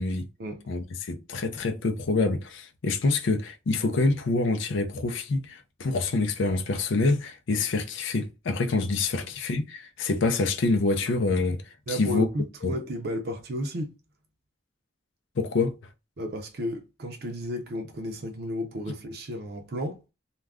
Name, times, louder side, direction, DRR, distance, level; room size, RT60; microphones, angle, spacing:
voice 1, 0.7-11.6 11.9-12.3 12.6-12.8 15.4-15.8, left 3 dB, 70° left, 0.5 m, -26 dB
voice 2, 11.9-14.0 16.2-20.0, equal, 50° right, 0.5 m, -33 dB
2.3 x 2.2 x 3.4 m
head